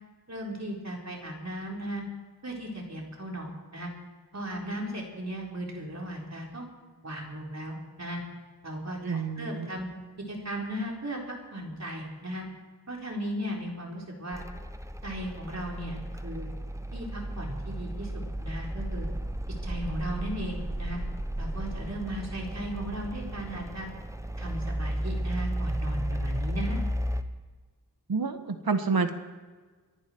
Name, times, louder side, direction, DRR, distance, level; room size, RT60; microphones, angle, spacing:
voice 1, 0.3-2.0 2.4-3.9 4.3-6.7 7.0-8.2 8.6-9.9 10.3-12.4 12.9-14.4 15.0-16.5 16.9-19.1 19.6-21.0 21.4-23.9 24.4-26.8, right 1 dB, 45° right, -1 dB, 4.3 m, -36 dB
voice 2, 9.0-9.7 28.1-29.1, right 4 dB, 65° right, 8 dB, 1.5 m, -28 dB
sound 1, 14.3-27.2, right 1 dB, 10° right, 1.0 m, -34 dB
25.0 x 11.0 x 4.6 m, 1.4 s
wide cardioid pair, 60°, 38 cm